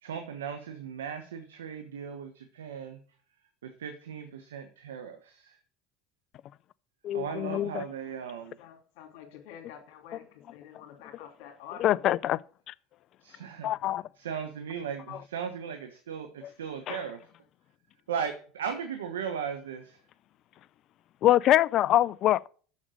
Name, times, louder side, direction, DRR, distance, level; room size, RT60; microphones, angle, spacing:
voice 1, 0.0-3.0 3.6-5.6 7.1-8.6 13.2-13.7 14.2-17.2 18.1-20.0, right 7 dB, 90° right, 1.1 m, -37 dB
voice 2, 7.0-7.8 11.8-12.4 12.7-12.8 13.6-14.0 15.1-15.2 16.4-16.5 16.9-17.0 21.2-22.5, left 13 dB, 55° left, 0.4 m, -24 dB
voice 3, 8.6-10.2 10.5-12.0, left 9 dB, 70° left, 2.7 m, -47 dB
7.2 x 6.4 x 6.3 m
hypercardioid pair, 80°, 0 cm